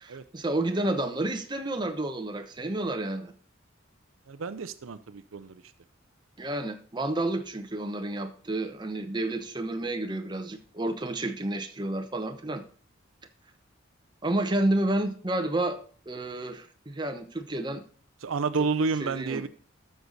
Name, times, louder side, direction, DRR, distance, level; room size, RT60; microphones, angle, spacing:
voice 1, 0.0-3.3 6.4-12.6 14.2-15.8 16.1-17.8 18.6-18.7 19.0-19.5, right 1 dB, 20° right, 0.9 m, -30 dB
voice 2, 4.3-5.6 18.2-19.5, right 4 dB, 85° right, 0.6 m, -30 dB
12.5 x 6.7 x 4.1 m
head